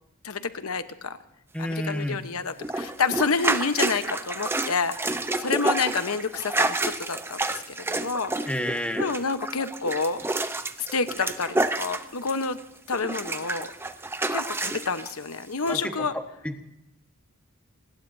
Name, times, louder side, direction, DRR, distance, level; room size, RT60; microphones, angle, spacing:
voice 1, 0.2-1.2 1.6-7.4 7.7-8.3 9.0-10.2 10.8-12.6 12.9-13.7 14.3-16.1, left 4 dB, 80° left, 10 dB, 1.1 m, -28 dB
voice 2, 1.5-2.2 8.5-9.1 15.7-15.9 16.4-16.5, equal, 5° left, 5 dB, 1.4 m, -29 dB
sound 1, 2.6-12.6 12.9-15.1 15.7-15.8, right 2 dB, 10° right, 0.7 m, -29 dB
26.0 x 20.0 x 2.7 m, 0.83 s
head